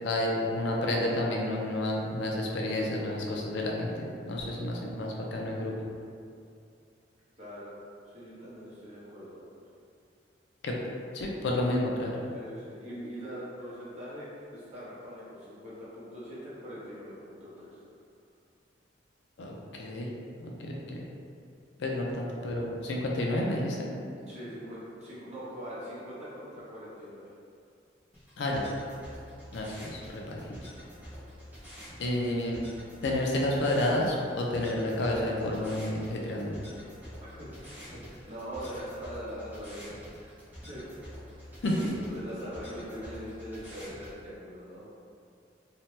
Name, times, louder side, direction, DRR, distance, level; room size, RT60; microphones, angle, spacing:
voice 1, 0.0-5.7 10.6-10.7 11.1-12.2 19.4-20.1 20.4-21.1 21.8-23.9 28.4-28.7 29.5-30.4 32.0-32.6 33.0-36.6 41.6-41.9, left 1 dB, 70° left, -2 dB, 0.4 m, -30 dB
voice 2, 7.4-7.7 8.0-9.6 12.3-17.7 24.3-27.3 37.4-40.3 40.7-40.8 41.3-41.5 41.9-45.0, equal, 35° right, -10 dB, 0.9 m, -42 dB
sound 1, 28.1-44.1, equal, 10° right, 0.6 m, -47 dB
2.7 x 2.1 x 3.0 m, 2.4 s
head